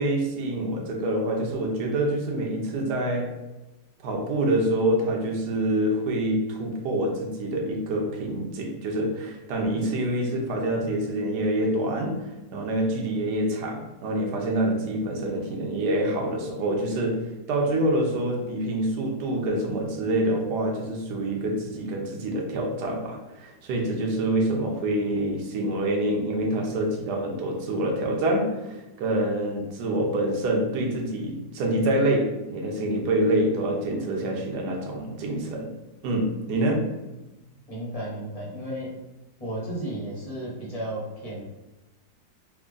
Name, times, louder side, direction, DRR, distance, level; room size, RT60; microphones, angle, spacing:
voice 1, 0.0-3.3 4.0-35.7 36.0-36.9, right 1 dB, 70° right, 1 dB, 1.2 m, -26 dB
voice 2, 37.7-38.9 39.4-41.4, right 1 dB, 40° left, -5 dB, 0.5 m, -33 dB
3.5 x 2.1 x 3.7 m, 1.0 s
omnidirectional pair, 2.0 m